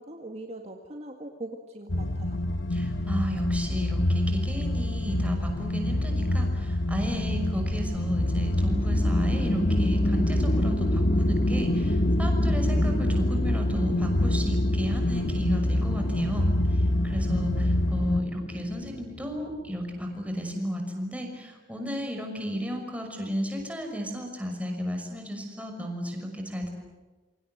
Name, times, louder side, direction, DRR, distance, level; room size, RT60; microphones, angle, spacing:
voice 1, 0.0-2.4, right 1 dB, 35° right, 3 dB, 2.0 m, -41 dB
sound 1, 1.9-18.2, left 1 dB, 70° left, 1.4 m, -26 dB
voice 2, 2.7-26.7, equal, 5° right, 2 dB, 6.1 m, -33 dB
sound 2, 7.8-19.9, equal, 45° left, 2.1 m, -31 dB
28.0 x 25.5 x 8.1 m, 1.3 s
head